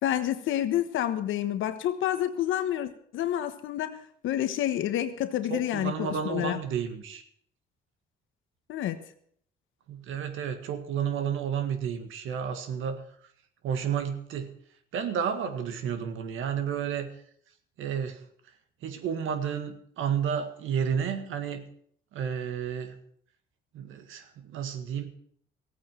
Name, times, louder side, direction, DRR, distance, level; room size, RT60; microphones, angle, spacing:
voice 1, 0.0-4.0 4.2-6.6 8.7-9.0, left 11 dB, 85° left, 10 dB, 1.3 m, -29 dB
voice 2, 5.5-7.2 9.9-13.0 13.6-14.5 14.9-17.1 17.8-18.2 18.8-21.7 22.1-23.0 23.7-25.1, right 7 dB, 80° right, 8 dB, 1.9 m, -31 dB
15.5 x 8.7 x 7.6 m, 0.63 s
cardioid pair, 90°, 20 cm